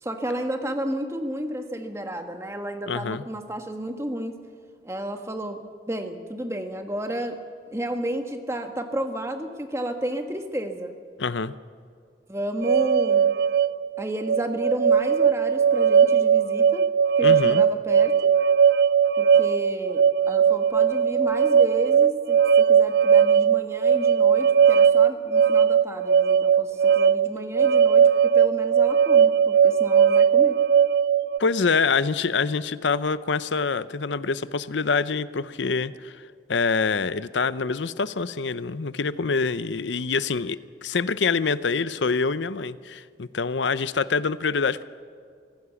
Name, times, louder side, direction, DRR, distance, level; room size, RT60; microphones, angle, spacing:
voice 1, 0.0-4.3 4.8-7.4 7.7-10.9 12.3-13.3 14.0-16.9 17.2-18.3 19.2-30.6, right 1 dB, 15° right, 5 dB, 1.4 m, -32 dB
voice 2, 2.9-3.2 11.2-11.5 17.2-17.6 31.4-44.8, left 4 dB, 90° left, 15 dB, 0.7 m, -25 dB
sound 1, 12.6-31.4, right 7 dB, 65° right, 0.4 m, -19 dB
24.5 x 16.5 x 7.1 m, 2.2 s
head